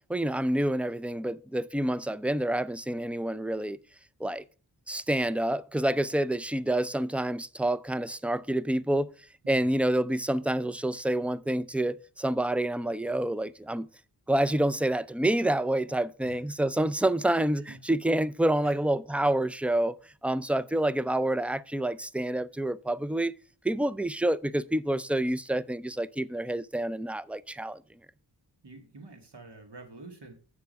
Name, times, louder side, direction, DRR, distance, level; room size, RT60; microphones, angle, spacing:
voice 1, 0.1-3.8 4.2-4.4 4.9-9.1 9.5-13.9 14.3-20.0 20.2-23.3 23.6-27.8, right 1 dB, 5° right, 0.3 m, -28 dB
voice 2, 9.4-9.8 16.2-16.7 17.7-17.8 18.6-18.8 28.6-30.3, right 3 dB, 70° right, 2.0 m, -48 dB
8.4 x 6.8 x 5.3 m
wide cardioid pair, 85°, 42 cm